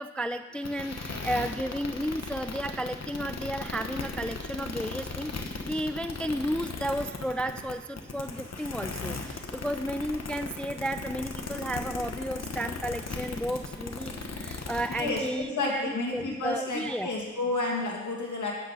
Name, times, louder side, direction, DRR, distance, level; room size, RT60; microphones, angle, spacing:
voice 1, 0.0-17.1, equal, 5° left, 10 dB, 0.3 m, -33 dB
sound 1, 0.6-15.3, left 3 dB, 55° left, 1.2 m, -37 dB
voice 2, 14.9-18.5, left 2 dB, 70° left, -2 dB, 2.3 m, -31 dB
8.5 x 8.1 x 5.3 m, 1.2 s
cardioid pair, 55°, 31 cm